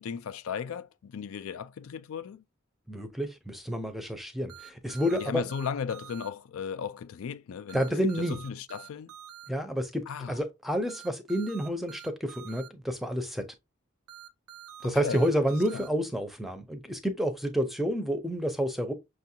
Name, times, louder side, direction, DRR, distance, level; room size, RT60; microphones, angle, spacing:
voice 1, 0.0-2.4 5.1-7.9 8.3-9.1 10.1-10.3 14.8-15.3 15.7-15.9, left 7 dB, 80° left, 0.4 m, -36 dB
voice 2, 2.9-5.4 7.7-8.4 9.5-13.5 14.8-18.9, equal, ahead, 0.5 m, -29 dB
sound 1, 4.5-6.3 7.7-9.5 10.9-12.7 14.1-15.9, right 10 dB, 90° right, 0.6 m, -47 dB
6.0 x 2.4 x 2.7 m
head